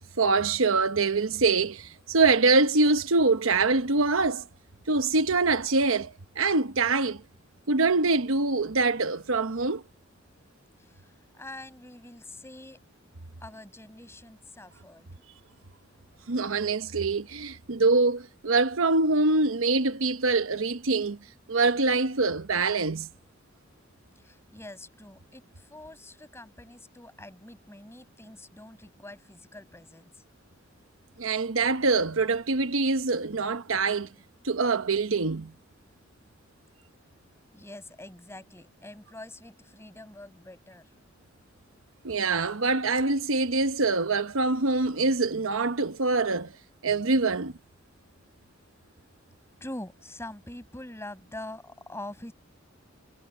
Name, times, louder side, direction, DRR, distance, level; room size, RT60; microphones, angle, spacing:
voice 1, 0.2-4.4 4.9-7.2 7.7-9.8 16.3-21.2 21.5-23.1 31.2-34.1 34.4-35.5 42.0-46.5 46.8-47.5, right 3 dB, 80° right, 1.1 m, -24 dB
voice 2, 11.3-12.8 13.4-15.1 24.2-30.1 37.5-40.9 49.6-52.3, left 1 dB, 15° left, 7.0 m, -44 dB
head